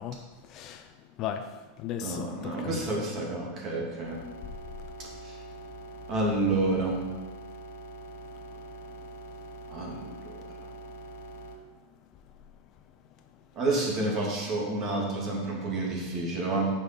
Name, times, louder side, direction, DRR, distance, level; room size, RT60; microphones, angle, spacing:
voice 1, 0.0-2.9, left 9 dB, 40° left, 8 dB, 0.6 m, -37 dB
voice 2, 2.0-4.2 5.2-5.3 6.1-7.0 9.7-10.0 13.6-16.7, right 2 dB, 35° right, -2 dB, 2.7 m, -29 dB
sound 1, 4.0-11.6, right 1 dB, 90° left, 1.3 m, -44 dB
9.0 x 5.8 x 5.3 m, 1.2 s
supercardioid pair, 145°, 0 cm